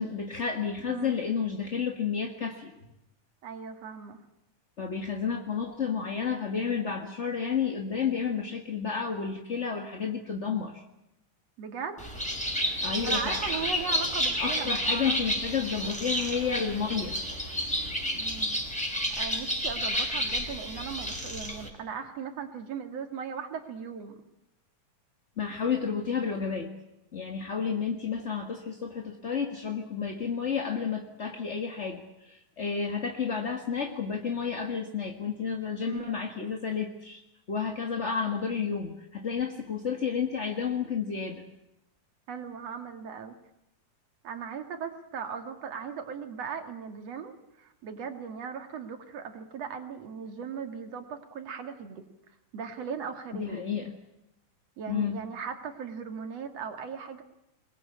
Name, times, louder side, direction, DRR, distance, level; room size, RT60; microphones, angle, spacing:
voice 1, 0.0-2.7 4.8-10.8 12.8-13.5 14.4-17.2 25.4-26.7 27.1-37.2 37.5-41.4 53.3-53.9 54.9-55.2, left 6 dB, 35° left, 3 dB, 1.1 m, -31 dB
voice 2, 0.8-1.2 3.4-4.2 11.6-12.0 13.0-15.2 18.1-18.6 19.2-24.2 35.8-36.2 42.3-43.4 44.2-52.0 52.5-53.7 54.8-57.2, right 6 dB, 50° right, 6 dB, 3.1 m, -38 dB
Bird, 12.0-21.7, equal, ahead, 4.3 m, -30 dB
23.0 x 21.0 x 8.6 m, 0.88 s
omnidirectional pair, 3.8 m